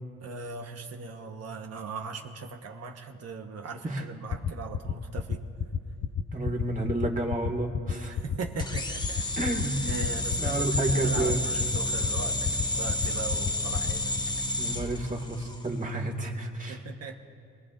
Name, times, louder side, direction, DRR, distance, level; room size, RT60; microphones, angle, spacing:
voice 1, 0.2-5.4 8.1-9.2 9.8-14.1 16.7-17.1, right 4 dB, 55° right, 3 dB, 1.2 m, -39 dB
sound 1, 4.3-14.2, left 7 dB, 45° left, 0.8 m, -29 dB
voice 2, 6.3-8.2 9.4-9.8 10.4-11.4 14.6-16.8, right 2 dB, 25° right, 2 dB, 2.1 m, -30 dB
sound 2, 8.6-15.7, left 1 dB, 15° left, 1.2 m, -31 dB
26.0 x 18.5 x 2.6 m, 2.3 s
cardioid pair, 90°, 30 cm